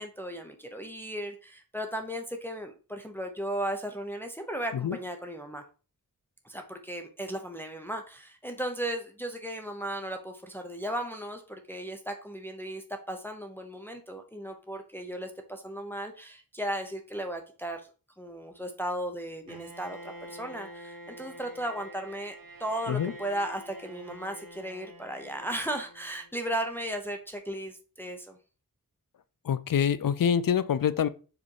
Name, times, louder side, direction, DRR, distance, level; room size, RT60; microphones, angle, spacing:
voice 1, 0.0-5.6 6.4-17.8 18.2-20.0 20.3-28.4, right 1 dB, 5° left, 0.8 m, -36 dB
Bowed string instrument, 19.5-26.4, right 1 dB, 70° right, 1.5 m, -47 dB
voice 2, 29.4-31.1, left 8 dB, 70° left, 0.5 m, -26 dB
4.9 x 4.3 x 4.7 m
wide cardioid pair, 95°, 35 cm